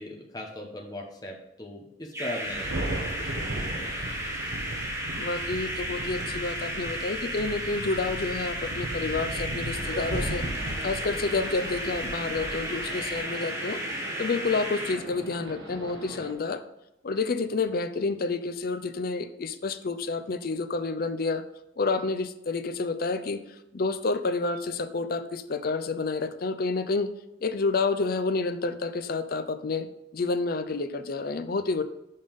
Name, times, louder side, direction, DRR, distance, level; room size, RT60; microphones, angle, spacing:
voice 1, 0.0-4.2, left 1 dB, 20° left, 0 dB, 1.1 m, -39 dB
sound 1, 2.1-15.0, equal, 15° right, 1.5 m, -34 dB
Thunder, 2.5-13.2, right 1 dB, 65° right, 0.9 m, -37 dB
voice 2, 5.2-10.5 10.8-13.8 14.2-16.6 17.0-21.4 21.8-23.4 23.7-27.1 27.4-29.9 30.1-31.8, left 3 dB, 55° left, 10 dB, 0.5 m, -29 dB
sound 2, 9.7-16.3, right 1 dB, 80° right, 1.3 m, -42 dB
5.5 x 5.4 x 5.3 m, 0.86 s
head